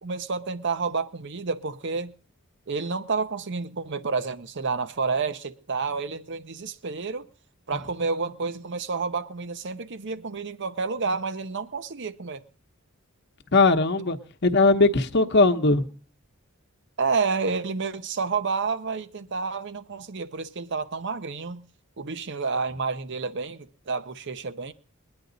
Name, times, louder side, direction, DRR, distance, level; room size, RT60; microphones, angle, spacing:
voice 1, 0.0-2.1 2.7-7.3 7.7-12.4 17.0-21.6 22.0-24.7, right 4 dB, 55° right, 0.7 m, -29 dB
voice 2, 13.5-15.8, left 3 dB, 55° left, 0.9 m, -20 dB
21.5 x 9.8 x 3.9 m
head